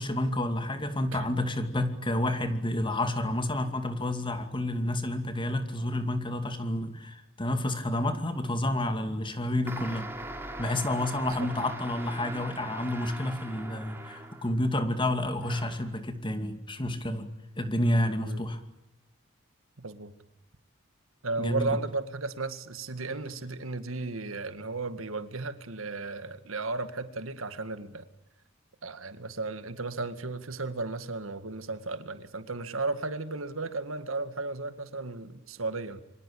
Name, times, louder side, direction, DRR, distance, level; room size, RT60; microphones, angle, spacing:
voice 1, 0.0-10.1 10.6-17.3 17.6-18.6 21.4-21.7, left 1 dB, 25° left, 8 dB, 2.5 m, -29 dB
sound 1, 9.7-14.7 15.4-16.0, right 1 dB, 10° right, 3.3 m, -41 dB
voice 2, 19.8-20.1 21.2-28.1 28.8-36.0, right 3 dB, 80° right, 11 dB, 2.0 m, -34 dB
27.5 x 25.0 x 8.7 m, 0.88 s
head